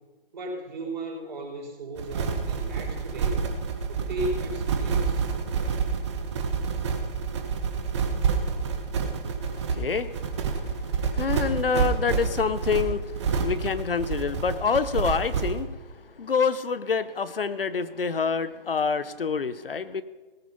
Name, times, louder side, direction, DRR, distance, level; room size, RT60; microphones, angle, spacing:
voice 1, 0.3-3.5 3.9-5.2, right 1 dB, 50° right, -1 dB, 5.1 m, -35 dB
sound 1, 2.0-15.6, right 5 dB, 30° right, 1.5 m, -28 dB
voice 2, 9.5-10.2 11.1-15.8 16.2-20.0, left 5 dB, 70° left, 14 dB, 1.0 m, -27 dB
18.0 x 9.9 x 5.5 m, 1.2 s
figure-of-eight pair, 155°, 29 cm